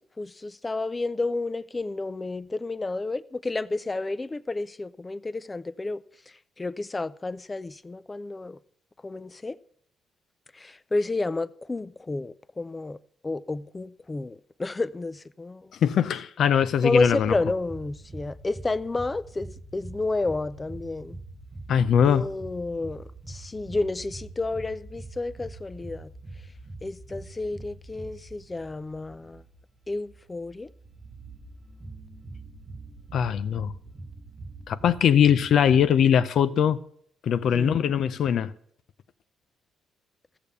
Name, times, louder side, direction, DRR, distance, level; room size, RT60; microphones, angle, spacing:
voice 1, 0.2-6.0 6.6-8.6 9.0-9.6 10.5-13.0 13.2-15.7 16.8-21.2 22.0-26.1 26.8-29.4 29.9-30.7 37.5-38.0, left 2 dB, 20° left, 0.5 m, -30 dB
voice 2, 15.8-17.3 21.7-22.3 33.1-33.7 34.7-36.8 37.2-38.5, left 8 dB, 65° left, 0.6 m, -21 dB
sound 1, 17.2-35.9, right 2 dB, 25° right, 1.0 m, -44 dB
14.5 x 6.9 x 6.8 m
cardioid pair, 90°, 0 cm